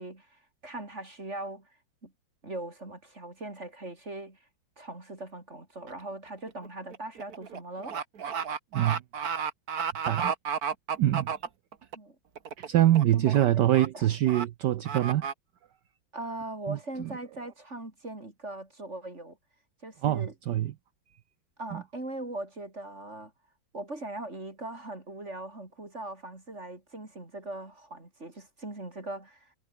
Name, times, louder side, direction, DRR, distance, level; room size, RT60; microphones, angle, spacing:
voice 1, 0.0-1.8 2.0-2.1 2.4-4.4 4.8-8.0 11.9-12.2 13.1-13.7 13.9-14.1 16.1-19.4 19.8-20.3 21.6-23.3 23.7-29.5, right 2 dB, 35° right, 4.6 m, -40 dB
sound 1, 5.9-6.1 6.5-11.9 12.4-12.7 12.9-13.4 13.7-13.9 14.3-14.4 14.8-15.3, right 7 dB, 50° right, 2.0 m, -32 dB
voice 2, 11.0-11.3 12.6-15.3 16.7-17.1 20.0-20.7 21.7-21.8, right 13 dB, 65° right, 1.2 m, -25 dB
omnidirectional pair, 2.2 m